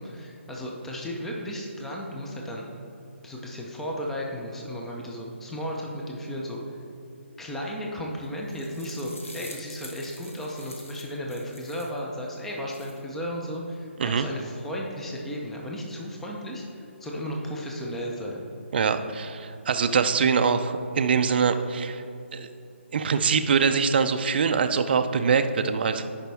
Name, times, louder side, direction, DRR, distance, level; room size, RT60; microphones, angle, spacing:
voice 1, 0.0-2.6 3.2-6.8 7.4-18.4, equal, 5° left, -2 dB, 0.5 m, -34 dB
sound 1, 8.2-12.0 12.5-13.0, left 2 dB, 90° left, 1.1 m, -46 dB
voice 2, 18.7-22.0 22.3-22.5 22.9-26.1, right 6 dB, 50° right, 8 dB, 0.4 m, -23 dB
10.0 x 5.1 x 3.5 m, 2.7 s
hypercardioid pair, 155°, 7 cm